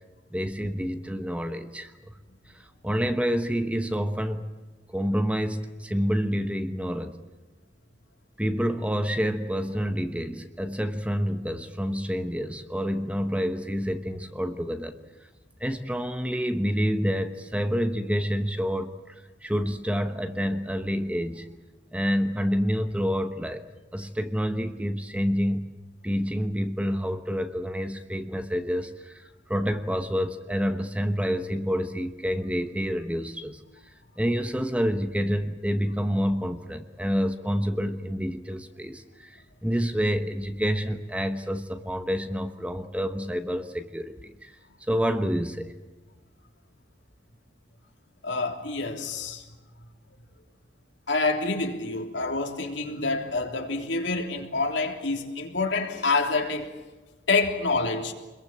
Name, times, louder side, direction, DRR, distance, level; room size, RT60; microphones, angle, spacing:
voice 1, 0.3-2.2 2.5-4.5 4.9-7.2 8.4-15.0 15.6-19.1 19.4-21.5 21.9-23.7 23.9-25.7 26.0-33.6 34.2-44.6 44.9-45.7, equal, 5° right, 1.1 m, -28 dB
voice 2, 48.2-49.4 51.1-56.7 57.3-58.1, left 3 dB, 75° left, 3.3 m, -27 dB
25.5 x 22.0 x 7.5 m
head